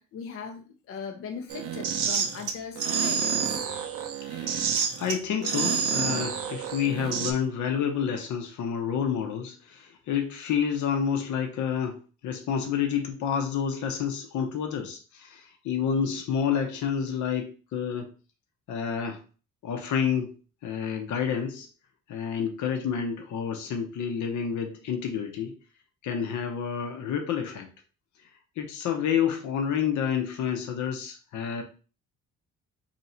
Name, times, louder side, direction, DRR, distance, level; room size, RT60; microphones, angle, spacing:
voice 1, 0.0-3.7, left 6 dB, 50° left, 4 dB, 0.5 m, -39 dB
sound 1, 1.5-7.3, right 7 dB, 85° right, 0.7 m, -28 dB
voice 2, 4.2-12.0 12.2-18.1 18.7-19.2 19.6-20.3 20.6-21.7 22.1-25.5 26.0-27.7 28.6-31.6, left 7 dB, 75° left, 4 dB, 0.8 m, -29 dB
3.0 x 2.7 x 4.2 m, 0.36 s
cardioid pair, 90°, 30 cm